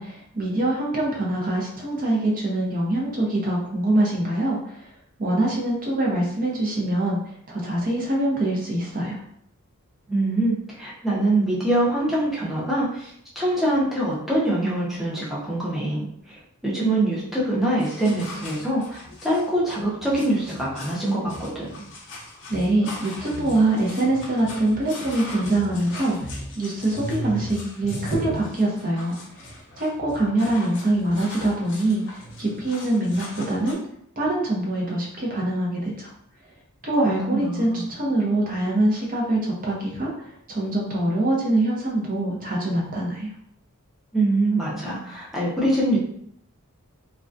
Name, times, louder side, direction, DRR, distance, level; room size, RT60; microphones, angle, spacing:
voice 1, 0.0-4.8 5.2-7.2 7.5-9.2 22.5-29.2 29.8-33.8 34.2-36.1 36.8-40.1 40.5-43.3, right 1 dB, 40° right, -3 dB, 0.7 m, -24 dB
voice 2, 10.1-13.1 13.4-21.7 37.3-37.9 44.1-46.0, right 1 dB, ahead, -7 dB, 0.6 m, -24 dB
sound 1, 17.8-33.7, equal, 55° left, 0.5 m, -38 dB
2.2 x 2.2 x 2.5 m, 0.69 s
head